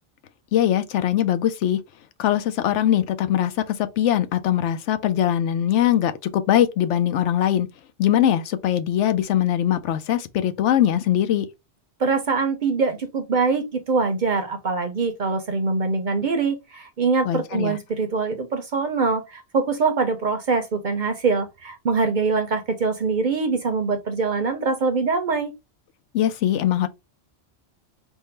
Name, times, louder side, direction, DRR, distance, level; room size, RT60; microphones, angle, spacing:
voice 1, 0.5-1.8 2.2-7.7 8.0-11.5 17.2-17.8 26.1-26.9, left 11 dB, 80° left, 0.9 m, -21 dB
voice 2, 12.0-25.5, right 4 dB, 50° right, 0.6 m, -23 dB
3.6 x 2.1 x 4.3 m
omnidirectional pair, 1.2 m